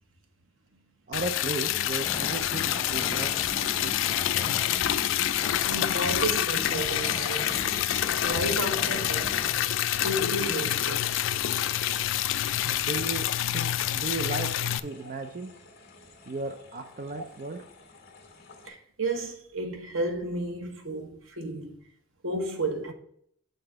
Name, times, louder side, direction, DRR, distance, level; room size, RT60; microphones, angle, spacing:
Liquid, 1.1-14.8, left 11 dB, 75° left, 0.3 m, -27 dB
voice 1, 1.1-4.0 4.4-4.7 12.6-13.2 13.5-14.5 14.8-15.5 16.3-17.6, right 3 dB, 45° right, 0.5 m, -35 dB
sound 1, 2.0-9.6, left 1 dB, 10° left, 0.7 m, -40 dB
voice 2, 5.6-7.5 8.2-9.3 10.0-11.1 15.0-15.1 17.1-17.2 18.6-21.8 22.2-22.9, right 2 dB, 85° right, 1.1 m, -32 dB
sound 2, 6.0-18.7, left 2 dB, 55° left, 1.5 m, -49 dB
6.8 x 3.8 x 6.1 m
head